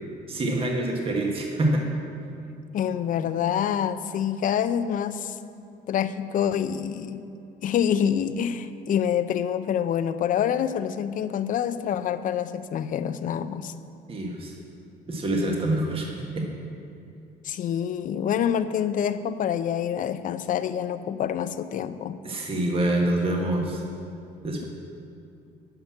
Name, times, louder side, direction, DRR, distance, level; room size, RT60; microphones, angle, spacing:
voice 1, 0.3-2.0 14.1-14.5 15.1-16.1 16.3-16.6 22.2-23.8 24.4-24.7, right 1 dB, 35° right, 0 dB, 1.3 m, -26 dB
voice 2, 2.7-5.4 5.9-7.3 7.6-13.7 17.4-22.2, left 9 dB, 50° left, 12 dB, 0.5 m, -26 dB
10.5 x 6.0 x 7.1 m, 2.6 s
cardioid pair, 110°, 17 cm